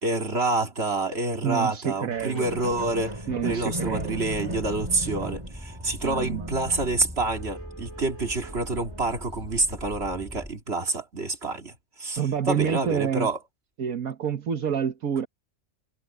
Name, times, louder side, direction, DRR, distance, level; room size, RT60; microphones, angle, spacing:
voice 1, 0.0-12.2 12.5-13.4, right 2 dB, 45° right, 2.8 m, -28 dB
voice 2, 1.4-2.5 3.3-4.2 6.0-6.5 12.2-13.3 13.8-15.3, right 8 dB, 80° right, 1.7 m, -28 dB
sound 1, 2.1-9.5 10.1-10.2, equal, 20° right, 3.7 m, -37 dB
sound 2, 4.0-10.5, equal, 5° left, 1.5 m, -41 dB
omnidirectional pair, 1.5 m